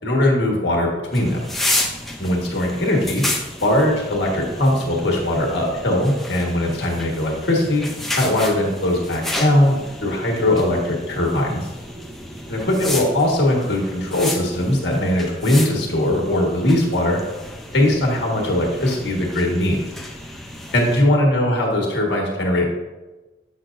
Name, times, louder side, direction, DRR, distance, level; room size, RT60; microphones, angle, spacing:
voice 1, 0.0-1.4 2.2-3.2 3.6-7.8 8.1-9.7 10.0-11.6 12.5-17.2 17.7-19.8 20.7-22.7, left 1 dB, 60° left, -1 dB, 1.5 m, -20 dB
sound 1, 1.1-21.0, left 1 dB, ahead, 0.5 m, -31 dB
7.9 x 6.0 x 2.6 m, 1.1 s
head